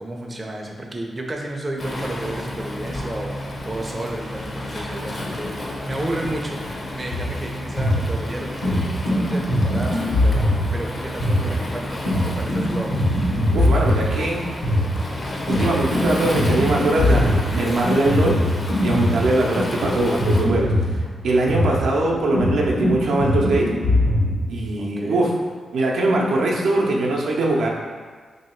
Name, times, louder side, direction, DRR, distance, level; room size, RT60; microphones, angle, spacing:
voice 1, 0.0-6.6 6.9-11.9 12.2-12.9 24.7-25.2, right 1 dB, 20° right, 0 dB, 0.4 m, -32 dB
Waves surf, 1.8-20.4, left 1 dB, 35° left, 0.6 m, -31 dB
sound 1, 7.1-24.4, left 1 dB, 80° left, 1.2 m, -22 dB
voice 2, 13.5-14.5 15.5-18.4 18.8-23.7 24.5-25.3 25.7-27.7, right 2 dB, 90° right, -2 dB, 0.6 m, -21 dB
3.0 x 2.8 x 4.3 m, 1.5 s
wide cardioid pair, 115°, 0 cm